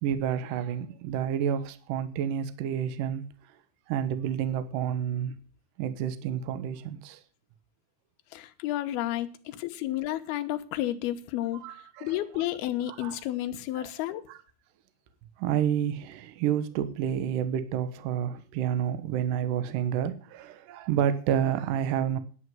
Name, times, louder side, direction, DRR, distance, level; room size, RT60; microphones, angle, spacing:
voice 1, 0.0-3.2 3.9-5.3 5.8-7.2 11.6-12.2 12.9-13.1 13.8-13.9 15.4-22.2, right 9 dB, 70° right, 2.1 m, -29 dB
voice 2, 8.3-14.2, left 13 dB, 70° left, 2.6 m, -31 dB
11.0 x 6.5 x 9.3 m
omnidirectional pair, 5.1 m